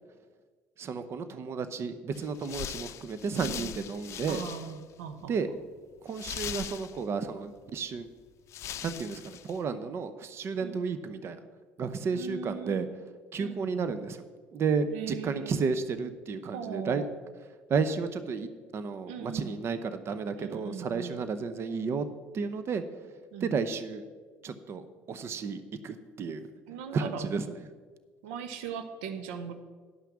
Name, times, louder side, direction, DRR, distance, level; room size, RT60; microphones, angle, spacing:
voice 1, 0.8-4.4 5.3-5.5 6.0-8.1 8.8-11.4 11.8-12.9 13.3-14.2 14.5-17.0 17.7-22.1 22.3-22.8 23.4-24.0 24.4-26.5 26.9-27.5, right 5 dB, 45° right, 12 dB, 0.7 m, -32 dB
sound 1, 2.1-4.9 5.2-5.3 6.1-7.3 8.1-8.2 8.5-9.6, left 11 dB, 55° left, 0.5 m, -40 dB
voice 2, 3.3-3.7 4.3-5.4 10.6-10.8 12.1-12.8 13.4-13.9 14.9-15.6 16.5-17.1 19.0-19.5 20.4-21.2 23.3-23.6 26.7-27.3 28.2-29.5, right 7 dB, 85° right, 9 dB, 0.8 m, -39 dB
11.0 x 5.8 x 7.1 m, 1.5 s
supercardioid pair, 80°, 6 cm